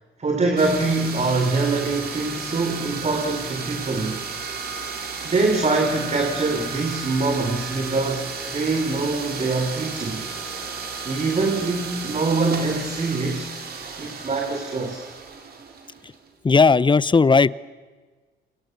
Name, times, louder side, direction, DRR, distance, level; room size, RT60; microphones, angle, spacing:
voice 1, 0.2-4.2 5.2-10.3 11.1-13.5 14.0-15.0, right 3 dB, 35° right, 3 dB, 4.0 m, -24 dB
sound 1, 0.6-16.3, right 5 dB, 55° right, 4.4 m, -33 dB
voice 2, 16.4-17.5, left 4 dB, 25° left, 19 dB, 0.8 m, -16 dB
29.0 x 26.0 x 6.8 m, 1.4 s
supercardioid pair, 75°, 20 cm